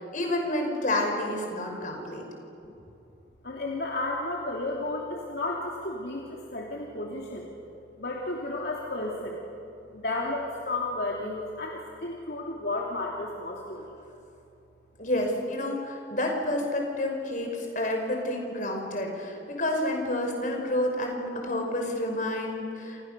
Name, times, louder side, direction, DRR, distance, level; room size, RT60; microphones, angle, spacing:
voice 1, 0.0-2.2 15.0-23.0, left 1 dB, 45° left, 2 dB, 5.5 m, -29 dB
voice 2, 3.4-7.5 8.0-9.4 9.9-13.9, left 2 dB, 60° left, -2 dB, 3.1 m, -33 dB
29.0 x 28.5 x 6.9 m, 2.8 s
head